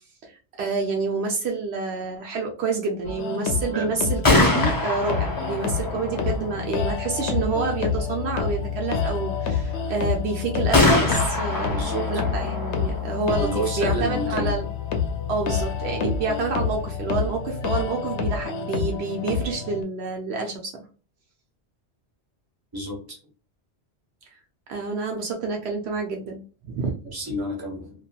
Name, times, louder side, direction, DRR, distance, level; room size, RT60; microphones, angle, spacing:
voice 1, 0.6-11.8 12.1-14.7 15.3-20.8 24.7-27.0, right 4 dB, 70° right, 2 dB, 0.8 m, -28 dB
sound 1, 3.0-19.8, left 5 dB, 80° left, 0.9 m, -29 dB
Gunshot gunfire, 4.0-17.8, left 3 dB, 25° left, 0.5 m, -27 dB
voice 2, 11.7-12.2 13.4-14.6 22.7-23.2 27.1-27.9, right 1 dB, 20° right, -2 dB, 0.9 m, -30 dB
2.8 x 2.4 x 2.2 m, 0.38 s
omnidirectional pair, 1.2 m